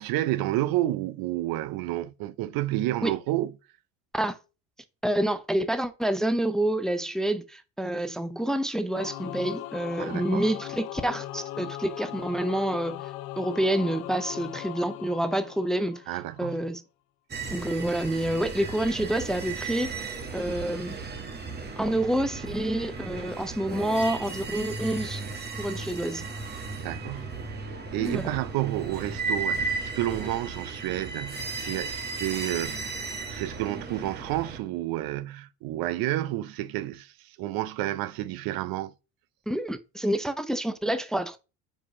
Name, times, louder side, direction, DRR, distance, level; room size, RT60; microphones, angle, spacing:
voice 1, 0.0-3.5 10.0-10.5 16.1-16.7 26.8-32.9 33.3-38.9, right 15 dB, 60° right, 0.6 m, -30 dB
voice 2, 5.0-13.0 13.4-16.0 16.4-16.8 17.5-19.9 20.3-20.9 21.8-25.2 25.6-26.2 28.0-28.3 39.5-41.4, right 1 dB, ahead, 0.6 m, -28 dB
Singing / Musical instrument, 8.9-16.4, left 15 dB, 80° left, 0.8 m, -39 dB
sound 1, 17.3-34.6, right 4 dB, 25° right, 1.5 m, -35 dB
5.2 x 4.9 x 5.7 m
supercardioid pair, 95°, 41 cm